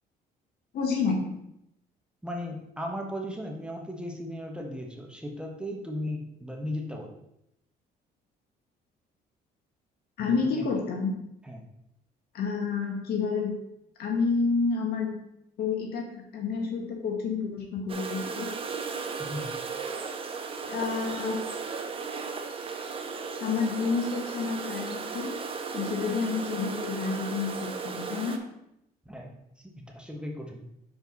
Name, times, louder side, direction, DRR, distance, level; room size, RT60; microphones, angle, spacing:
voice 1, 0.7-1.3 10.2-11.1 12.3-13.6 14.0-15.1 15.6-18.5 20.7-21.4 23.4-25.3 25.7-28.4, left 5 dB, 70° left, 1 dB, 1.7 m, -29 dB
voice 2, 2.2-7.1 10.2-10.7 11.4-11.6 19.2-19.5 29.0-30.7, equal, 5° right, 1 dB, 1.0 m, -37 dB
sound 1, 17.9-28.4, right 5 dB, 35° right, 0.8 m, -35 dB
6.2 x 4.9 x 4.1 m, 0.80 s
cardioid pair, 110°, 17 cm